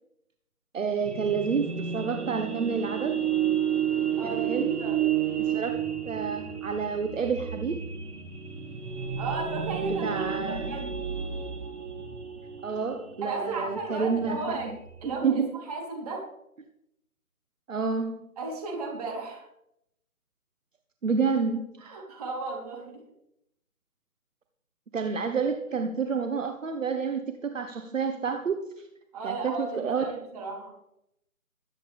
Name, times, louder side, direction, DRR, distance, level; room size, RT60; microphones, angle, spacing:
voice 1, 0.7-1.7 1.9-3.2 4.2-4.7 5.4-5.8 6.1-7.8 10.0-10.7 12.6-14.7 15.0-15.5 17.7-18.2 21.0-21.9 24.9-28.9 29.2-30.1, right 5 dB, 60° right, 6 dB, 1.3 m, -29 dB
sound 1, 1.0-15.2, right 9 dB, 85° right, 2.7 m, -31 dB
voice 2, 4.2-5.1 9.2-10.9 13.2-14.7 15.0-16.2 18.4-19.5 21.8-23.0 29.1-30.7, right 3 dB, 25° right, -1 dB, 3.6 m, -35 dB
21.5 x 9.0 x 3.6 m, 0.80 s
figure-of-eight pair, 165°, 44 cm